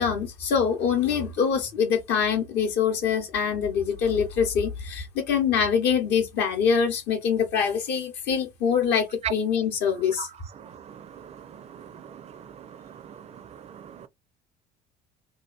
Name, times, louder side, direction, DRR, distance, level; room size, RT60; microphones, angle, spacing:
voice 1, 0.0-10.3, left 7 dB, 55° left, 0.8 m, -24 dB
voice 2, 10.2-14.1, right 9 dB, 30° right, 0.5 m, -40 dB
2.7 x 2.3 x 2.4 m
hypercardioid pair, 70°, 21 cm